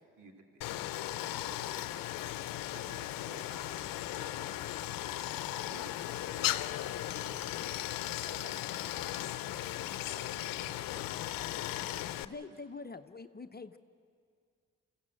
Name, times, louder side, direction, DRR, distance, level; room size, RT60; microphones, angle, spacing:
voice 1, 0.2-2.1 2.7-4.7 5.2-7.5 8.0-12.3, right 3 dB, 60° right, 2 dB, 2.4 m, -55 dB
Stream, 0.6-12.3, left 14 dB, 80° left, 0.6 m, -37 dB
voice 2, 12.0-13.8, left 4 dB, 30° left, 9 dB, 0.8 m, -45 dB
25.5 x 16.0 x 7.7 m, 2.2 s
supercardioid pair, 45°, 34 cm